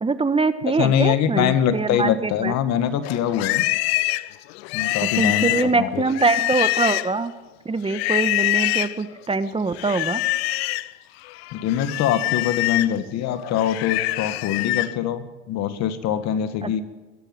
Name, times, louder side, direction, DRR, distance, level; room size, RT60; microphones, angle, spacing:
voice 1, 0.0-2.5 5.2-7.3 7.6-10.2 16.6-16.8, right 4 dB, 20° right, 12 dB, 1.4 m, -23 dB
voice 2, 0.6-3.6 4.7-6.0 11.5-16.8, left 9 dB, 60° left, 11 dB, 1.9 m, -23 dB
Livestock farm animals working animals, 3.0-7.3 7.9-9.0 9.8-10.9 11.3-15.0, left 19 dB, 80° left, 0.7 m, -25 dB
22.0 x 13.0 x 9.1 m, 1.2 s
supercardioid pair, 85°, 30 cm